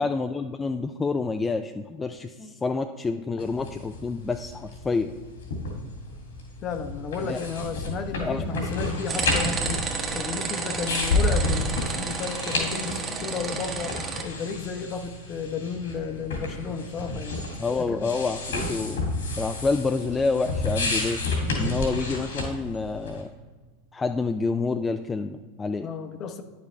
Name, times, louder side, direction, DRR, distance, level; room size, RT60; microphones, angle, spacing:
voice 1, 0.0-5.1 7.2-7.4 8.2-8.5 17.6-19.1 19.4-21.2 21.5-23.3 23.9-25.9, left 4 dB, 15° left, 7 dB, 0.4 m, -28 dB
sound 1, 3.4-23.2, left 2 dB, 80° left, 2.4 m, -31 dB
voice 2, 6.6-17.4 17.9-18.1 25.8-26.4, left 5 dB, 40° left, 8 dB, 0.8 m, -33 dB
sound 2, 9.1-14.2, right 5 dB, 30° right, 1.2 m, -31 dB
9.5 x 6.7 x 3.3 m, 1.4 s
hypercardioid pair, 95°, 0 cm